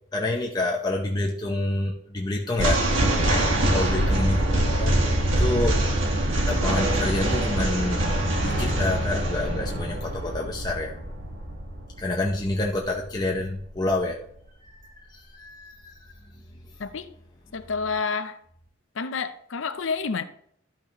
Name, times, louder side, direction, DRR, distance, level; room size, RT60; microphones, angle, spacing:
voice 1, 0.1-2.9 3.7-4.4 4.8-5.0 5.4-5.8 6.4-8.1 8.4-11.0 12.0-14.2 14.6-14.7 15.1-16.0, left 2 dB, 20° left, 0.8 m, -28 dB
sound 1, 2.5-13.8, right 1 dB, 80° right, 1.6 m, -24 dB
voice 2, 3.2-3.5 16.8-17.1 17.5-18.4 19.0-20.2, left 5 dB, 80° left, 0.6 m, -29 dB
12.5 x 5.8 x 3.0 m
head